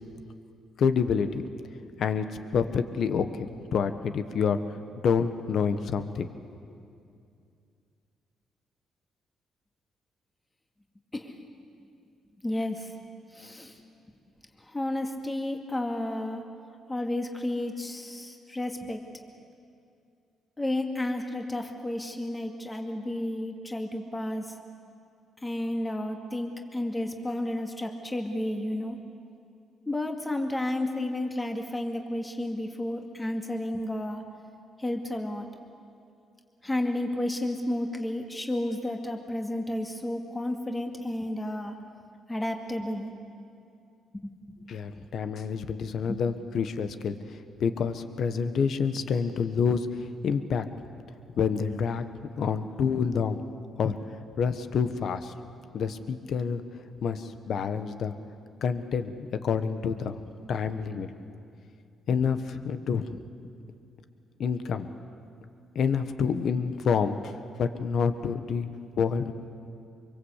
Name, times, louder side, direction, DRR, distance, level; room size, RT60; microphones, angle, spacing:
voice 1, 0.8-1.6 2.0-4.6 5.0-6.3 44.7-50.6 51.4-52.0 52.3-53.4 53.8-54.0 54.4-55.3 55.7-56.6 57.0-58.1 58.6-60.2 60.5-61.1 62.1-63.2 64.4-64.9 65.7-68.7 69.0-69.3, left 6 dB, 65° left, 10 dB, 1.3 m, -28 dB
voice 2, 12.4-12.9 13.3-13.8 14.6-16.4 16.9-19.0 20.6-24.5 25.4-29.0 29.9-34.2 34.8-35.5 36.6-41.8 42.3-43.1 44.1-44.5 44.9-45.0 46.1-46.2, left 1 dB, 15° left, 3 dB, 2.3 m, -32 dB
25.5 x 23.0 x 8.3 m, 2.5 s
cardioid pair, 90°, 0 cm